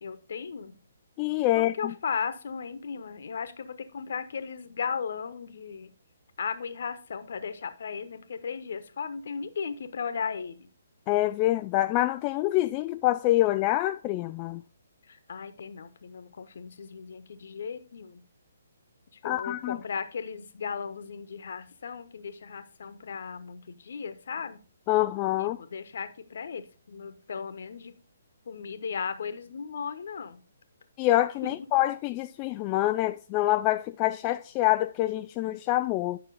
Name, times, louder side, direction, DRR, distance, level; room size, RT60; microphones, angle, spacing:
voice 1, 0.0-0.8 1.5-5.9 6.4-10.7 15.1-18.2 19.2-24.6 25.4-27.9 28.5-30.4 31.4-31.6, left 6 dB, 60° left, 1.0 m, -36 dB
voice 2, 1.2-1.7 11.1-14.6 19.2-19.8 24.9-25.6 31.0-36.2, left 16 dB, 25° left, 0.3 m, -26 dB
9.9 x 6.0 x 4.0 m
figure-of-eight pair, 135°, 0 cm